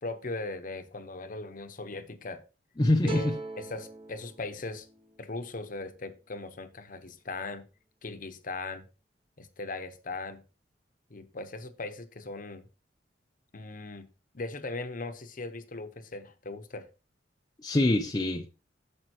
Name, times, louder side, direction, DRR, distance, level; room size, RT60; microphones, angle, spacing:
voice 1, 0.0-2.4 3.0-3.3 3.6-4.9 5.2-7.6 8.0-8.9 9.4-10.4 11.1-12.7 13.5-14.1 14.3-16.9, left 3 dB, 50° left, 1.0 m, -39 dB
voice 2, 2.8-3.4 17.6-18.5, left 1 dB, 20° left, 0.6 m, -25 dB
sound 1, 3.0-6.2, right 3 dB, 30° right, 1.2 m, -41 dB
9.0 x 7.2 x 3.0 m
head